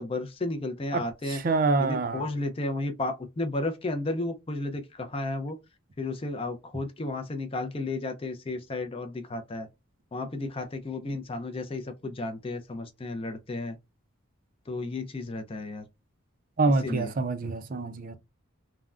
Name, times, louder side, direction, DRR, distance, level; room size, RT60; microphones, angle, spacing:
voice 1, 0.0-1.4 1.8-5.6 6.0-9.7 10.1-13.8 14.7-15.8 16.8-17.1, left 2 dB, 25° left, 0.4 m, -33 dB
voice 2, 0.9-2.2 16.6-18.1, right 3 dB, 40° right, 0.4 m, -26 dB
3.5 x 2.1 x 2.4 m
head